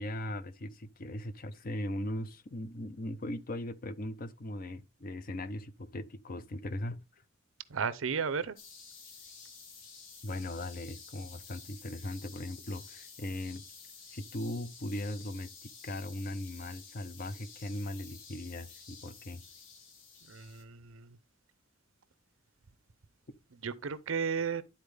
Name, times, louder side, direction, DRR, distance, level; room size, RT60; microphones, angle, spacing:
voice 1, 0.0-7.0 10.2-13.6 14.1-15.5 15.8-19.4, left 1 dB, 45° left, 0.6 m, -39 dB
voice 2, 7.7-8.6 20.3-21.2 23.6-24.6, right 6 dB, 85° right, 0.6 m, -34 dB
sound 1, 8.6-20.6, left 5 dB, 70° left, 1.7 m, -52 dB
11.0 x 4.3 x 3.3 m
head